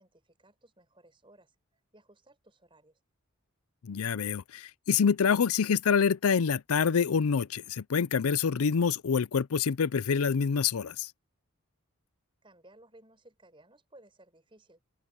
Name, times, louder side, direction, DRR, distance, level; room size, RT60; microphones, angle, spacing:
voice 1, 0.0-1.5 1.9-3.0 12.4-14.8, right 1 dB, 20° right, 5.7 m, -59 dB
voice 2, 3.8-11.1, left 6 dB, 75° left, 0.5 m, -26 dB
open air
head